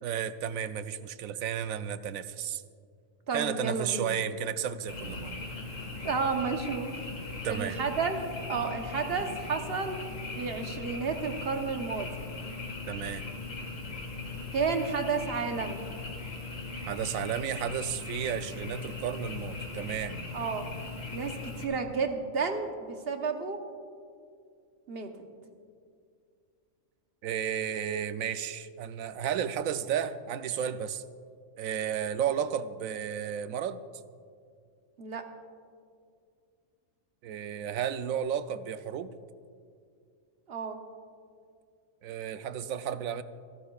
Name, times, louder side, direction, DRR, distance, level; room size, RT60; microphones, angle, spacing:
voice 1, 0.0-2.6 3.3-5.3 7.4-7.8 12.9-13.2 16.9-20.2 27.2-31.0 31.6-33.8 37.2-39.1 42.0-43.2, right 9 dB, 90° right, 12 dB, 1.0 m, -33 dB
voice 2, 3.3-4.2 6.0-7.0 7.5-8.2 8.5-10.0 10.3-12.2 14.5-15.9 20.3-20.7 21.1-23.6 24.9-25.1 35.0-35.2 40.5-40.8, right 5 dB, 50° right, 5 dB, 1.2 m, -31 dB
Frog, 4.9-21.6, left 3 dB, 70° left, 2.2 m, -39 dB
27.5 x 11.5 x 2.4 m, 2.3 s
omnidirectional pair, 1.4 m